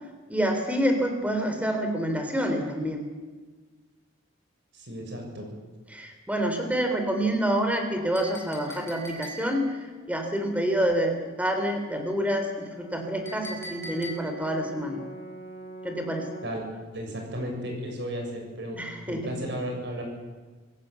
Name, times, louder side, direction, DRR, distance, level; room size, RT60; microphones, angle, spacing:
voice 1, 0.3-3.1 5.9-9.7 10.1-15.0 15.8-16.2 18.8-19.3, right 1 dB, 5° right, 4 dB, 3.6 m, -27 dB
voice 2, 4.7-5.5 16.4-16.6 16.9-18.8 19.1-20.0, equal, 55° right, 2 dB, 7.2 m, -34 dB
Chink clink, 8.1-9.7 13.3-14.5, equal, 10° left, 4.8 m, -42 dB
Brass instrument, 12.4-16.7, right 2 dB, 35° left, 7.0 m, -43 dB
26.5 x 15.5 x 8.3 m, 1.3 s
head